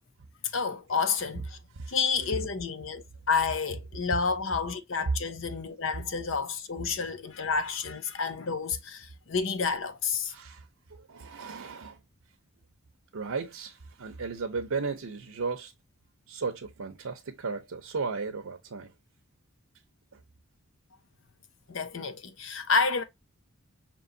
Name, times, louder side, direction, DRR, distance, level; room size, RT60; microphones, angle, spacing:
voice 1, 0.5-1.6 1.9-10.3 21.7-23.0, left 5 dB, 60° left, 0.7 m, -30 dB
voice 2, 10.3-12.0 13.1-15.7 16.3-18.9 20.1-20.2, right 4 dB, 80° right, 0.7 m, -35 dB
5.3 x 2.9 x 2.6 m
head